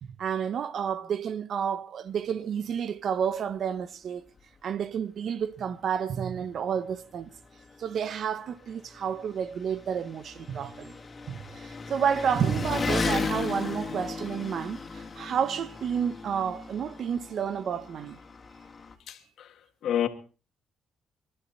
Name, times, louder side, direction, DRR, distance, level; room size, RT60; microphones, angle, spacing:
voice 1, 0.0-4.2 4.6-7.3 7.8-11.0 11.3-18.2, right 7 dB, 60° right, 1.0 m, -30 dB
Engine, 4.4-4.5 4.9-5.0 5.9-6.0 6.2-18.9, left 4 dB, 35° left, 2.7 m, -36 dB
voice 2, 19.1-20.1, left 10 dB, 75° left, 2.0 m, -30 dB
25.0 x 11.5 x 4.2 m
cardioid pair, 90°, 0 cm